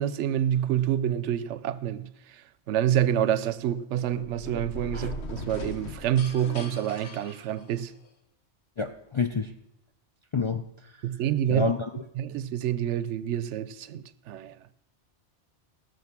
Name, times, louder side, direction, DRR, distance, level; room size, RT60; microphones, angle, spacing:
voice 1, 0.0-2.1 2.7-7.9 11.0-11.7 12.2-14.5, right 11 dB, 85° right, 0.9 m, -27 dB
sound 1, 4.1-8.1, left 3 dB, 70° left, 1.3 m, -40 dB
voice 2, 8.8-9.5 10.3-11.0 11.5-12.1, left 4 dB, 50° left, 0.3 m, -29 dB
16.5 x 6.7 x 6.0 m
omnidirectional pair, 1.2 m